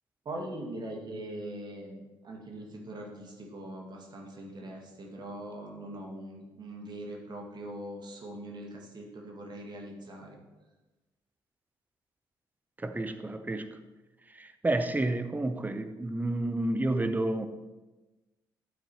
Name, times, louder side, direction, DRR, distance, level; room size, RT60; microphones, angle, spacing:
voice 1, 0.3-10.4, right 1 dB, 40° right, 0 dB, 2.0 m, -42 dB
voice 2, 12.8-13.7 14.3-17.5, right 2 dB, 15° right, 9 dB, 0.8 m, -30 dB
12.5 x 8.6 x 3.0 m, 1.1 s
figure-of-eight pair, 40°, 11 cm